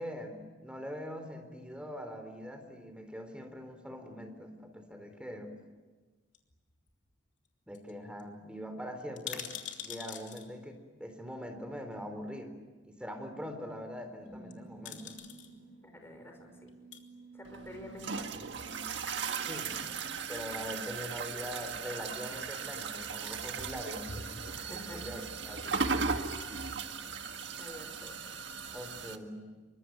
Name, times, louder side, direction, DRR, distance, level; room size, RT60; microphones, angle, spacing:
voice 1, 0.0-5.5 7.7-12.6 12.8-15.2 19.4-19.9 20.3-24.4 24.7-25.8 28.7-29.5, equal, 5° right, 6 dB, 3.9 m, -43 dB
sound 1, 6.3-7.1 7.4-7.5 7.7-7.9 8.2-8.3 9.0-10.5 11.6-11.7 14.3-14.5 14.8-15.5 16.6-17.0 17.7-18.4 18.6-18.7, left 9 dB, 70° left, 3.3 m, -44 dB
sound 2, 14.2-22.2, right 2 dB, 45° left, 7.7 m, -53 dB
voice 2, 15.8-16.7 17.3-18.3 24.5-25.0 26.1-26.4 27.6-28.2, equal, 15° left, 5 dB, 5.5 m, -49 dB
sound 3, 17.4-29.2, right 5 dB, 70° right, 1.8 m, -37 dB
27.0 x 24.0 x 9.3 m, 1.3 s
head